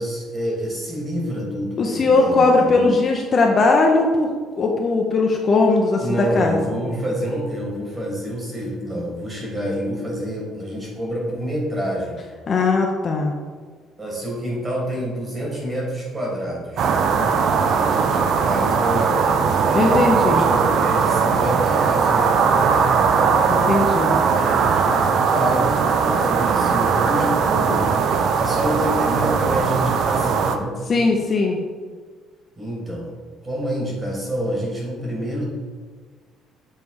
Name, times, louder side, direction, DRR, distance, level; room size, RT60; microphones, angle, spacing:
voice 1, 0.0-2.9 6.0-12.2 14.0-16.9 17.6-23.1 24.1-27.9 28.2-30.8 32.6-33.1 33.4-35.4, equal, 20° right, -3 dB, 1.7 m, -28 dB
voice 2, 1.8-4.3 4.6-6.6 12.5-13.3 19.7-20.4 23.5-24.2 30.9-31.6, left 3 dB, 30° left, 1 dB, 0.6 m, -18 dB
sound 1, 16.8-30.6, right 6 dB, 50° right, 0.4 m, -19 dB
7.2 x 3.2 x 4.6 m, 1.6 s
cardioid pair, 160°, 0 cm